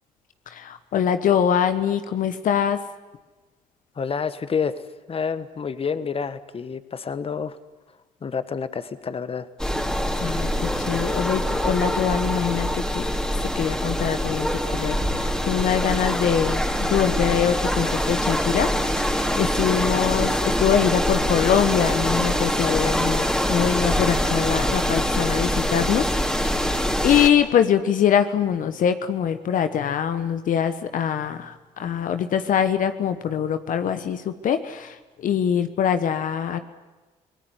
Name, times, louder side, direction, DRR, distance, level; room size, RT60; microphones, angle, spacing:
voice 1, 0.5-2.8 10.2-13.1 13.4-18.7 19.0-26.1 26.4-36.6, left 8 dB, 60° left, 10 dB, 1.3 m, -23 dB
voice 2, 4.0-4.8 5.1-7.6 8.2-9.5, left 6 dB, 40° left, 13 dB, 1.4 m, -28 dB
sound 1, 9.6-27.3, equal, 5° left, 3.7 m, -24 dB
25.0 x 19.0 x 9.7 m, 1.2 s
hypercardioid pair, 55°, 15 cm